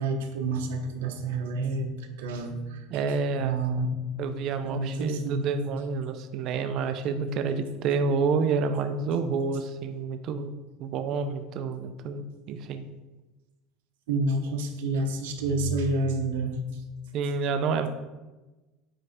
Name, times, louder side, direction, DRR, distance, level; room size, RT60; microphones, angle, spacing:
voice 1, 0.0-2.8 3.4-3.9 4.6-5.5 14.1-16.6, right 3 dB, 85° right, 4 dB, 1.0 m, -29 dB
voice 2, 2.9-3.9 4.2-10.5 10.8-12.9 17.1-17.9, right 5 dB, 50° right, 8 dB, 0.5 m, -29 dB
9.0 x 3.3 x 4.2 m, 1.1 s
supercardioid pair, 120°, 0 cm